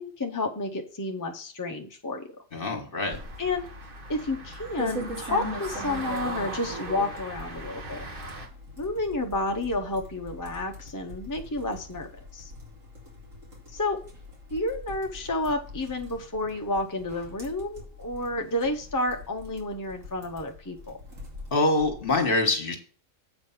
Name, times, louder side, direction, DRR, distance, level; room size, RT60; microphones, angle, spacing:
voice 1, 0.0-2.3 3.4-3.7 4.1-8.0 8.8-12.5 13.7-14.0 14.5-21.0, left 2 dB, 20° left, 2 dB, 0.6 m, -30 dB
voice 2, 2.5-3.2 21.5-22.8, left 2 dB, 45° left, 4 dB, 1.7 m, -24 dB
sound 1, 3.1-22.2, equal, 75° right, 2.9 m, -42 dB
sound 2, 3.2-8.5, right 2 dB, 40° right, 1.5 m, -39 dB
8.0 x 5.2 x 5.7 m, 0.40 s
omnidirectional pair, 1.4 m